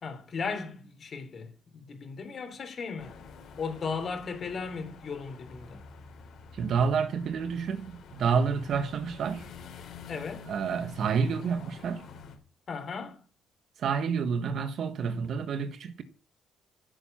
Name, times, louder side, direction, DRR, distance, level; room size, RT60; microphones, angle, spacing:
voice 1, 0.0-1.5 1.9-3.2 3.6-5.8 10.1-10.5 12.7-13.2, left 5 dB, 50° left, 3.7 m, -36 dB
sound 1, 3.0-12.3, left 5 dB, 75° left, 4.2 m, -48 dB
voice 2, 6.5-9.5 10.5-12.0 13.8-16.0, right 6 dB, 65° right, 1.5 m, -29 dB
14.5 x 7.6 x 7.3 m
cardioid pair, 90°, 0 cm